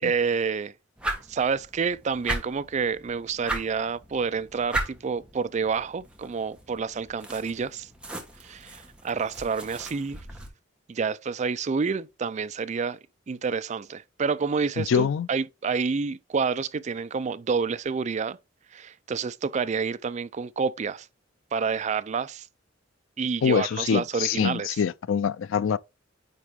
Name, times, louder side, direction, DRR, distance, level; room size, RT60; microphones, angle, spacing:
voice 1, 0.0-0.7 1.3-7.9 8.4-10.2 10.9-13.0 13.3-18.4 18.7-21.1 21.5-22.5 23.2-24.8, right 5 dB, 35° right, 0.4 m, -28 dB
sound 1, 1.0-10.5, right 1 dB, 5° right, 1.5 m, -37 dB
voice 2, 14.8-15.3 23.4-25.8, left 7 dB, 80° left, 0.4 m, -25 dB
9.6 x 3.7 x 3.5 m
head